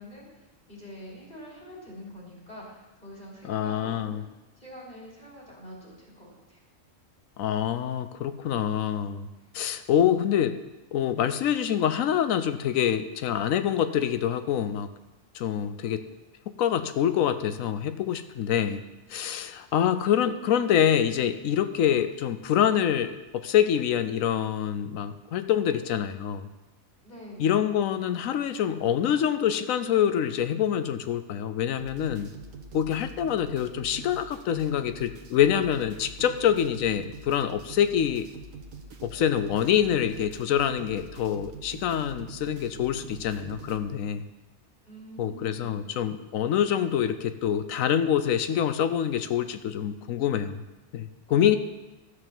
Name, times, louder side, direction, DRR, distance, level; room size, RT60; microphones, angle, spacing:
voice 1, 0.0-6.6 27.0-27.5 44.8-45.8 51.3-51.6, equal, 30° left, -4 dB, 3.8 m, -45 dB
voice 2, 3.4-4.2 7.4-9.3 9.5-10.6 10.9-14.9 15.3-16.0 16.6-18.8 19.1-26.4 27.4-32.3 32.7-38.3 39.0-44.2 45.2-50.6 50.9-51.6, left 9 dB, 85° left, 11 dB, 1.1 m, -26 dB
sound 1, 31.8-43.8, right 3 dB, 85° right, 1.5 m, -44 dB
13.0 x 6.6 x 7.1 m, 1.1 s
omnidirectional pair, 1.4 m